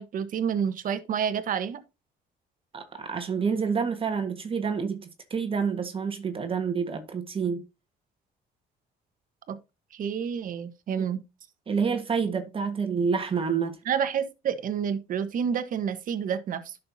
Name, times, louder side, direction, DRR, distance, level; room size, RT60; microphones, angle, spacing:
voice 1, 0.0-1.8 9.5-9.6 9.9-11.2 13.9-16.8, right 7 dB, 55° right, 1.3 m, -29 dB
voice 2, 2.7-7.6 11.7-13.8, right 6 dB, 30° right, 1.6 m, -28 dB
11.0 x 6.7 x 2.8 m
cardioid pair, 110°, 17 cm